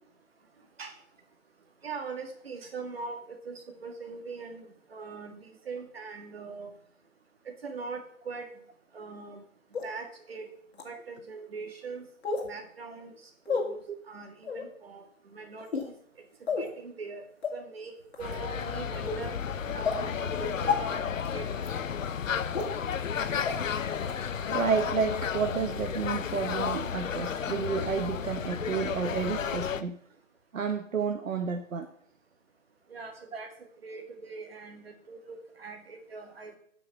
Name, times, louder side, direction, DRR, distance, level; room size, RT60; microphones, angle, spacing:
voice 1, 1.8-6.7 7.6-8.5 8.9-9.4 9.8-10.5 10.8-12.1 12.4-13.1 13.5-15.0 15.3-15.7 16.6-17.2 17.5-19.4 19.7-21.0 21.3-21.6 32.9-33.5 33.8-36.6, right 4 dB, 45° right, 4 dB, 2.0 m, -41 dB
sound 1, 9.7-9.8 10.7-10.8 12.2-12.5 13.5-13.6 14.4-14.7 15.6-15.9 16.5-16.7 17.4-17.5 18.1-18.3 19.1-19.2 19.8-20.0 20.7-20.8 21.6-21.7 22.5-22.6 23.5-23.6 24.1-24.2, left 5 dB, 50° left, 2.3 m, -29 dB
sound 2, 18.2-29.8, left 7 dB, 70° left, 0.8 m, -32 dB
voice 2, 24.5-30.0 30.5-31.9, right 5 dB, 75° right, 6 dB, 1.2 m, -30 dB
10.5 x 6.0 x 5.8 m, 0.62 s
hypercardioid pair, 175°, 40 cm